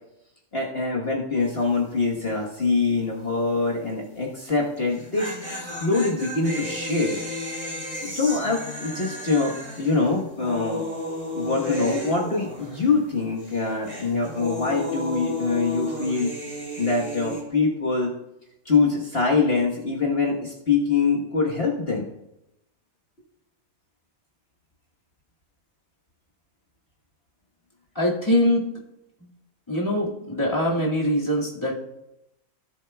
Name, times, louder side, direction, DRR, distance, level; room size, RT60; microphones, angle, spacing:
voice 1, 0.5-7.2 8.0-10.8 11.3-16.3 16.8-18.1 18.6-22.0, left 4 dB, 45° left, -2 dB, 1.4 m, -24 dB
sound 1, 1.4-1.8 2.0-2.1 4.8-13.1 13.4-17.4, left 1 dB, 20° right, 2.6 m, -33 dB
voice 2, 28.0-28.6 29.7-31.7, left 1 dB, 20° left, -4 dB, 2.0 m, -23 dB
17.0 x 7.3 x 2.3 m, 0.87 s
omnidirectional pair, 1.5 m